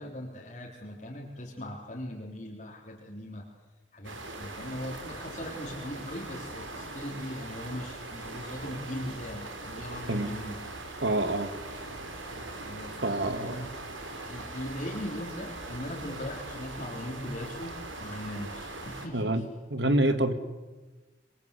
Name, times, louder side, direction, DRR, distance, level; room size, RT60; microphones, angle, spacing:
voice 1, 0.0-3.5 3.9-10.6 12.6-13.0 13.3-13.7 14.3-19.4, left 1 dB, 40° left, -2 dB, 3.6 m, -39 dB
sound 1, 4.0-19.1, right 2 dB, 90° right, 4.0 m, -41 dB
voice 2, 11.0-11.5 13.0-13.8 19.1-20.3, right 1 dB, 65° right, 10 dB, 2.0 m, -27 dB
26.0 x 22.5 x 8.4 m, 1.2 s
head